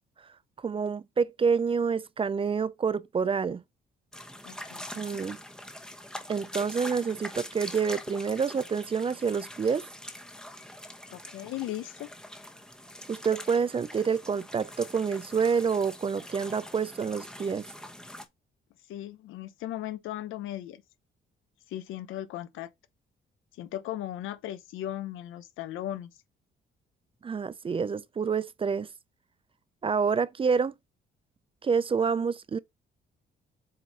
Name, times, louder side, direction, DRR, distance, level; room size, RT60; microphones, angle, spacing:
voice 1, 0.6-3.6 5.0-5.4 6.3-9.8 13.1-17.7 27.2-28.9 29.8-30.7 31.6-32.6, right 6 dB, 25° right, 0.4 m, -28 dB
sound 1, 4.1-18.2, left 1 dB, 5° left, 0.9 m, -44 dB
voice 2, 4.4-4.9 11.1-12.1 18.9-20.8 21.7-22.7 23.6-26.1, left 13 dB, 85° left, 0.7 m, -37 dB
7.6 x 2.6 x 5.3 m
cardioid pair, 90°, 20 cm